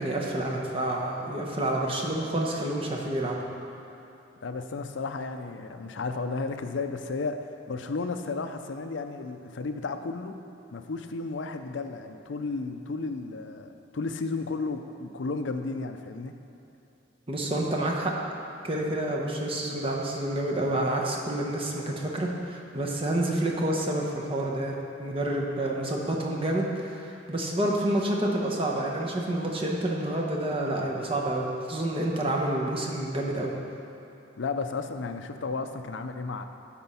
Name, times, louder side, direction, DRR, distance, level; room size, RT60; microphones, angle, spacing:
voice 1, 0.0-3.4 17.3-18.1 18.6-33.5, right 1 dB, 30° right, -1 dB, 1.0 m, -28 dB
voice 2, 4.4-10.4 10.7-16.4 34.4-36.4, left 3 dB, 85° left, 7 dB, 0.5 m, -33 dB
12.0 x 4.5 x 5.5 m, 2.9 s
head